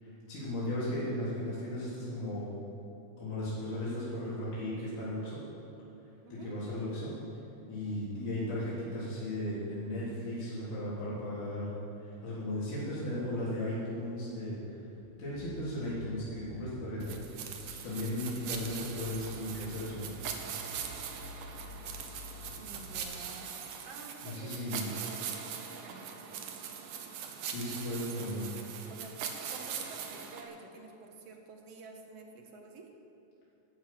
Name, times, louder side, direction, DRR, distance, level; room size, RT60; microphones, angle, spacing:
voice 1, 0.0-2.5 3.2-5.4 6.3-7.1 7.7-14.8 15.2-17.1 17.8-20.2 24.2-24.9 27.4-28.5, left 1 dB, 70° left, -9 dB, 5.1 m, -36 dB
sound 1, 15.0-23.0, equal, 35° left, 1.4 m, -50 dB
sound 2, 17.0-30.4, right 7 dB, 75° right, 2.5 m, -41 dB
voice 2, 18.5-18.8 22.6-23.5 23.8-26.6 28.9-29.2 29.5-32.9, right 3 dB, 55° right, 3 dB, 2.1 m, -51 dB
12.5 x 12.0 x 7.6 m, 2.9 s
omnidirectional pair, 3.7 m